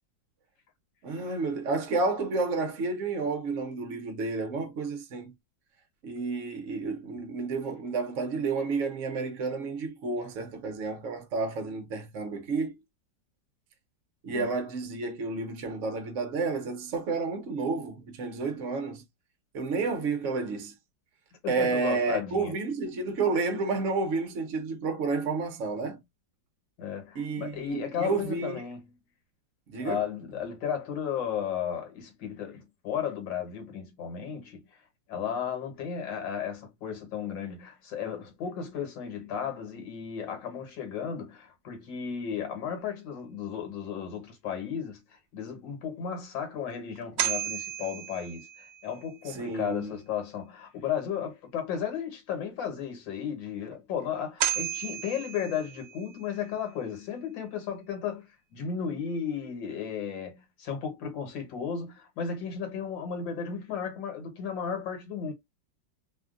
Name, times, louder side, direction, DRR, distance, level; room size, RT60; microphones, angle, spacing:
voice 1, 1.0-5.3 6.0-12.7 14.2-19.0 19.5-20.7 21.5-26.0 27.1-28.6 29.7-30.0 49.3-50.0, right 4 dB, 55° right, 1.0 m, -31 dB
voice 2, 21.4-22.5 26.8-28.8 29.8-34.6 35.1-58.3 58.5-65.3, left 7 dB, 75° left, 1.8 m, -34 dB
sound 1, 47.0-49.1 54.0-54.1 54.4-56.3, right 11 dB, 80° right, 1.3 m, -33 dB
3.5 x 2.3 x 2.4 m
omnidirectional pair, 2.0 m